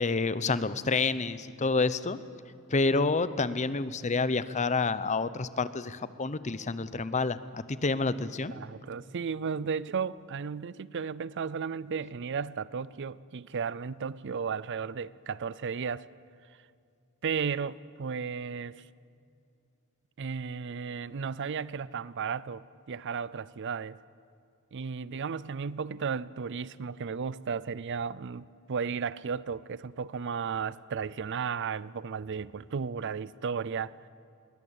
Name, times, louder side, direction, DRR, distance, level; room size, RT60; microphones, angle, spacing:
voice 1, 0.0-2.2 2.7-8.5, left 3 dB, 35° left, 0.7 m, -28 dB
voice 2, 8.5-16.1 17.2-18.8 20.2-24.0 24.7-34.0, right 6 dB, 55° right, 0.5 m, -34 dB
21.0 x 19.5 x 8.8 m
head